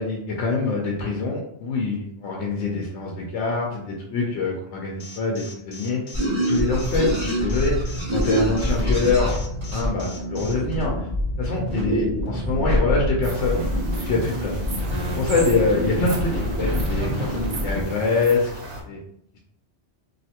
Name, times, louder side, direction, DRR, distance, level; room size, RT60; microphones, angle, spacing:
voice 1, 0.0-6.0 6.5-9.3 9.7-11.1 11.4-13.7 13.9-14.6 15.1-18.5 18.8-19.0, left 3 dB, 85° left, -1 dB, 0.9 m, -25 dB
Alarm, 5.0-10.5, left 4 dB, 55° left, 0.7 m, -41 dB
sound 1, 6.1-17.8, equal, 25° right, 1.5 m, -25 dB
sound 2, 13.2-18.8, right 2 dB, 80° right, 1.1 m, -37 dB
3.2 x 2.6 x 2.8 m, 0.74 s
omnidirectional pair, 1.1 m